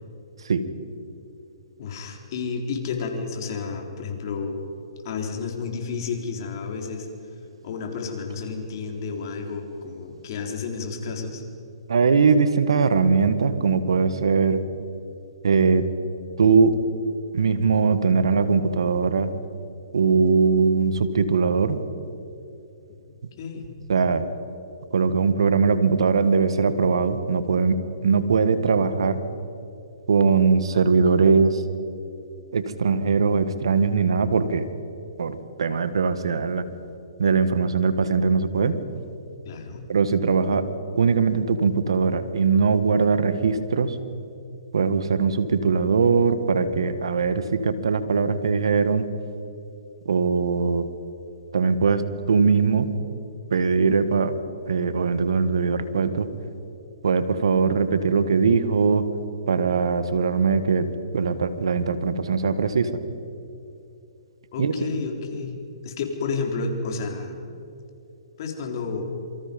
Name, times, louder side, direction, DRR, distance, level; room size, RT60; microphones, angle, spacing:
voice 1, 1.8-4.6 5.0-7.1 7.6-11.4 23.0-23.8 39.4-39.9 64.5-65.6 65.8-67.5 68.4-69.1, left 4 dB, 50° left, 2 dB, 4.0 m, -31 dB
voice 2, 11.9-14.6 15.4-15.9 16.4-16.8 17.3-19.3 19.9-21.8 23.9-24.2 24.9-29.2 30.1-31.6 32.5-34.7 35.2-36.7 37.2-38.8 39.9-40.7 41.0-44.0 44.7-49.1 50.1-50.9 51.5-52.9 53.5-54.4 54.7-56.3 57.0-59.1 59.5-60.9 61.1-62.9 64.6-64.7, right 5 dB, 75° right, 11 dB, 1.8 m, -21 dB
27.0 x 24.5 x 5.4 m, 2.7 s
hypercardioid pair, 135°, 3 cm